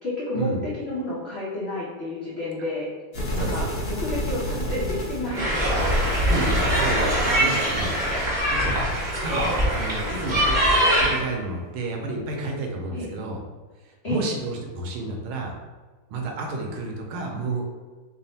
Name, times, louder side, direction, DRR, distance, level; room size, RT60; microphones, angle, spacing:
voice 1, 0.0-0.5 0.8-2.9 3.3-6.0 12.9-13.1 14.0-14.2, left 2 dB, 85° left, -8 dB, 0.5 m, -31 dB
sound 1, 3.1-11.2, equal, 60° left, 1.3 m, -32 dB
voice 2, 3.4-3.7 6.3-7.9 8.5-8.8 9.2-13.4 13.8-15.5 16.1-17.8, right 2 dB, 80° right, 1 dB, 1.5 m, -31 dB
sound 2, 5.3-11.2, equal, 40° right, 0.6 m, -22 dB
4.0 x 2.1 x 4.0 m, 1.3 s
omnidirectional pair, 2.4 m